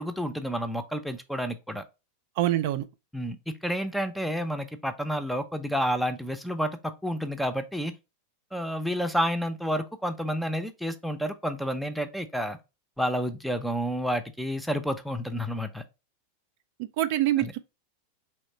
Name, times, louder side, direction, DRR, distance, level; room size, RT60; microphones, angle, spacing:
voice 1, 0.0-1.8 3.1-7.9 8.5-12.6 13.0-15.8 17.4-17.5, equal, ahead, 0.6 m, -30 dB
voice 2, 2.4-2.9 16.8-17.6, right 13 dB, 55° right, 0.4 m, -25 dB
3.6 x 3.1 x 4.1 m
figure-of-eight pair, 90°, 0 cm